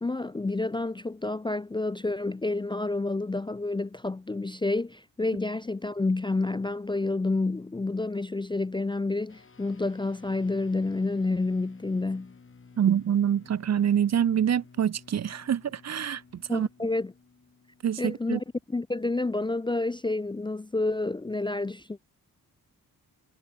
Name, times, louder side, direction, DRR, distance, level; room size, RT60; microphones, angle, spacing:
voice 1, 0.0-12.3 16.5-17.1 18.0-22.0, left 2 dB, 15° left, 0.4 m, -29 dB
sound 1, 9.3-18.9, left 5 dB, 35° left, 2.7 m, -55 dB
voice 2, 12.8-16.7 17.8-18.4, right 9 dB, 50° right, 0.6 m, -26 dB
wide cardioid pair, 115°, 36 cm